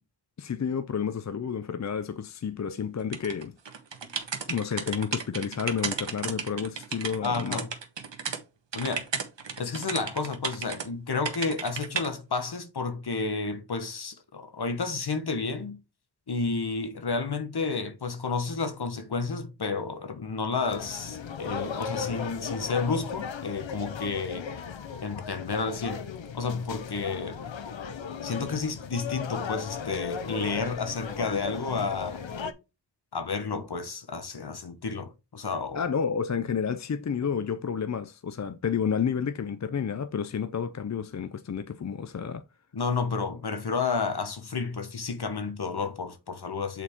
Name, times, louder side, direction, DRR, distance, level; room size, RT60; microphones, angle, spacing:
voice 1, 0.4-3.5 4.5-7.6 35.7-42.4, left 7 dB, 40° left, 0.5 m, -30 dB
sound 1, 3.1-8.4 8.7-10.9 11.2-12.1, right 5 dB, 70° right, 1.3 m, -34 dB
voice 2, 7.2-7.7 8.7-9.1 9.6-15.8 16.3-24.5 25.0-26.0 26.3-27.5 28.2-32.3 33.1-35.8 42.7-46.8, left 4 dB, 55° left, 1.2 m, -31 dB
sound 2, 20.6-32.5, left 6 dB, 80° left, 0.8 m, -37 dB
7.2 x 4.1 x 3.6 m
cardioid pair, 45°, 45 cm